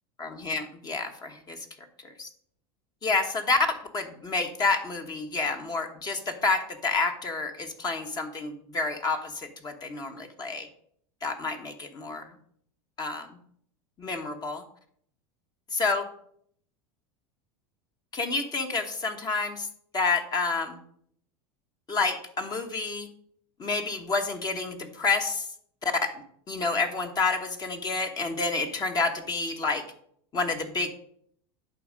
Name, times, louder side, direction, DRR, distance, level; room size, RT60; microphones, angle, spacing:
voice 1, 0.2-1.6 2.0-2.3 3.0-3.6 3.9-10.7 11.2-12.3 13.0-13.3 14.0-14.6 15.8-16.0 18.1-19.7 19.9-20.8 21.9-23.1 23.6-25.5 25.8-26.2 26.5-29.8 30.3-30.9, left 4 dB, 30° left, 5 dB, 1.1 m, -29 dB
10.5 x 4.3 x 5.1 m, 0.65 s
supercardioid pair, 115°, 14 cm